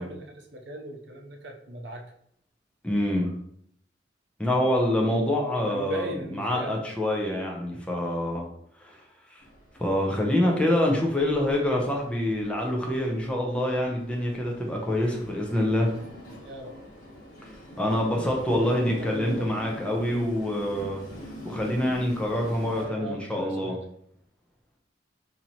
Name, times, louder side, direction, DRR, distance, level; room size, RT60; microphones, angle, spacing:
voice 1, 0.0-2.0 5.7-6.9 16.4-16.7 17.8-18.0 18.4-20.2 22.8-23.8, right 1 dB, 65° right, 2 dB, 0.7 m, -39 dB
voice 2, 2.8-3.3 4.4-6.1 6.3-8.5 8.8-9.0 9.3-9.4 9.8-15.9 17.8-21.0 21.4-23.8, left 1 dB, 5° left, -1 dB, 0.6 m, -26 dB
Train, 9.4-22.9, equal, 45° left, 1.1 m, -44 dB
2.9 x 2.8 x 4.1 m, 0.69 s
head